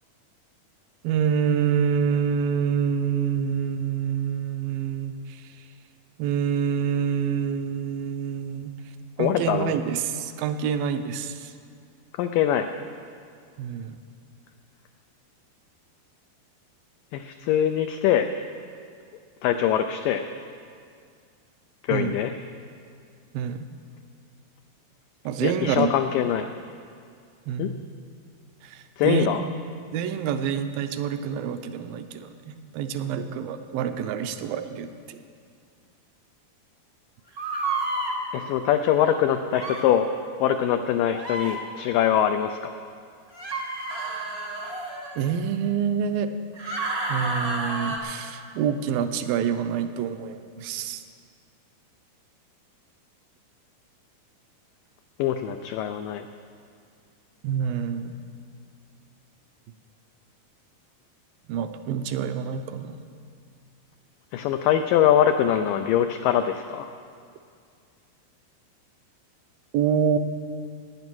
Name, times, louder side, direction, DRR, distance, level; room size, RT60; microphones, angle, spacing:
voice 1, 1.0-5.5 6.2-8.7 9.2-11.5 13.6-14.0 21.9-22.2 23.3-23.7 25.3-25.9 27.5-27.9 28.6-29.3 29.9-35.2 45.2-46.3 47.1-51.0 57.4-58.1 61.5-63.0 69.7-70.2, right 7 dB, 80° right, 9 dB, 2.2 m, -27 dB
voice 2, 9.2-9.7 12.2-12.7 17.1-18.3 19.4-20.2 21.8-22.3 25.4-26.5 27.6-27.7 29.0-29.4 38.3-40.1 40.4-42.7 55.2-56.2 64.3-66.9, left 10 dB, 90° left, 7 dB, 1.9 m, -23 dB
sound 1, 37.4-38.1 39.5-39.8 41.1-41.5 43.3-45.2 46.5-48.0, right 2 dB, 55° right, 0.6 m, -30 dB
17.5 x 9.4 x 6.1 m, 2.2 s
omnidirectional pair, 4.5 m